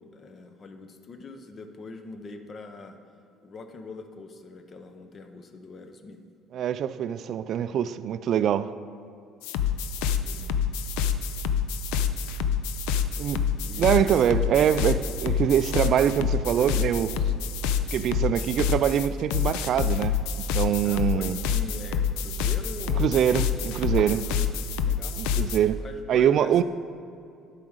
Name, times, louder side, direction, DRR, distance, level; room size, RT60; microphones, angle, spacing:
voice 1, 0.0-3.0 3.4-6.2 10.0-10.5 13.6-14.4 20.8-23.3 24.1-24.5 24.8-25.2 25.8-26.6, left 3 dB, 40° left, 0.8 m, -43 dB
voice 2, 6.5-8.7 13.2-13.4 13.8-17.2 17.9-21.4 23.0-24.3 25.2-26.6, right 9 dB, 55° right, 0.3 m, -24 dB
sound 1, 9.4-25.6, left 7 dB, 85° left, 0.4 m, -27 dB
10.5 x 4.9 x 6.4 m
supercardioid pair, 100°, 0 cm